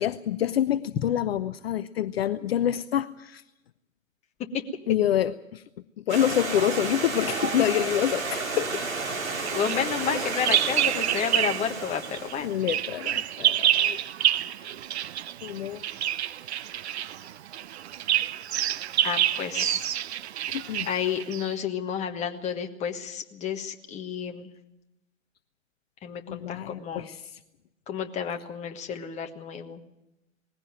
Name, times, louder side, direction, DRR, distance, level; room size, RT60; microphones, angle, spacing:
voice 1, 0.0-3.4 4.9-5.6 6.0-8.8 10.1-10.3 12.4-14.0 15.4-15.8 19.6-19.7 20.5-20.9 26.3-27.4, left 11 dB, 50° left, 14 dB, 0.6 m, -27 dB
Stream, 6.1-12.6, right 3 dB, 80° right, 4.8 m, -32 dB
voice 2, 9.5-12.5 19.0-19.9 20.9-24.5 26.0-27.1 27.9-29.8, left 7 dB, 15° left, 5 dB, 1.4 m, -31 dB
Bird vocalization bird call bird song, 9.5-11.7 12.0-21.5, right 11 dB, 55° right, 0.8 m, -28 dB
20.0 x 16.0 x 8.9 m, 0.91 s
hypercardioid pair, 125°, 40 cm